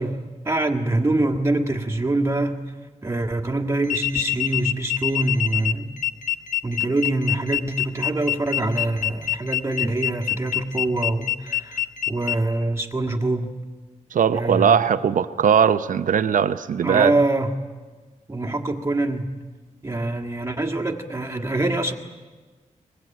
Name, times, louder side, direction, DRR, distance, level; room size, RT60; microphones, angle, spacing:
voice 1, 0.0-2.6 3.0-6.0 6.6-11.8 12.1-13.5 14.3-14.9 16.8-17.5 18.3-19.4 19.8-21.9, right 2 dB, 20° right, 3 dB, 1.7 m, -24 dB
sound 1, 3.8-12.4, left 13 dB, 80° left, 1.1 m, -25 dB
voice 2, 14.1-17.1, right 7 dB, 90° right, 12 dB, 0.7 m, -19 dB
23.5 x 20.0 x 9.0 m, 1.4 s
wide cardioid pair, 130°, 13 cm